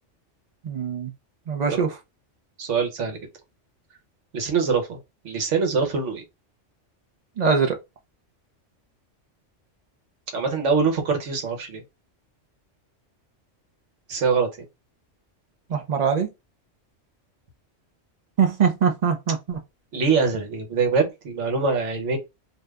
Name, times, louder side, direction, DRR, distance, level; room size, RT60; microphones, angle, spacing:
voice 1, 0.6-1.1 1.5-2.0 7.4-7.8 15.7-16.3 18.4-19.6, right 6 dB, 50° right, 0.5 m, -22 dB
voice 2, 2.6-3.2 4.3-5.0 5.2-6.2 10.3-11.8 14.1-14.5 19.9-22.2, right 5 dB, 75° right, 1.3 m, -23 dB
2.7 x 2.4 x 3.3 m
omnidirectional pair, 1.3 m